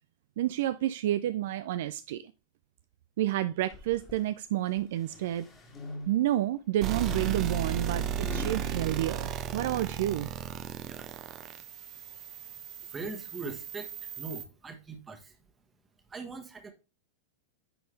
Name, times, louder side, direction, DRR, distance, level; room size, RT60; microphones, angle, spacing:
voice 1, 0.4-2.3 3.2-5.5 6.1-10.3, right 13 dB, 55° right, 0.3 m, -30 dB
sound 1, 3.7-4.3 4.8-6.4 7.0-8.7, left 3 dB, 25° left, 1.9 m, -45 dB
sound 2, 6.8-14.4, right 8 dB, 35° right, 0.8 m, -35 dB
voice 2, 12.8-15.4 16.1-16.7, right 3 dB, 15° right, 1.3 m, -41 dB
9.9 x 4.3 x 3.3 m
figure-of-eight pair, 90°, 0 cm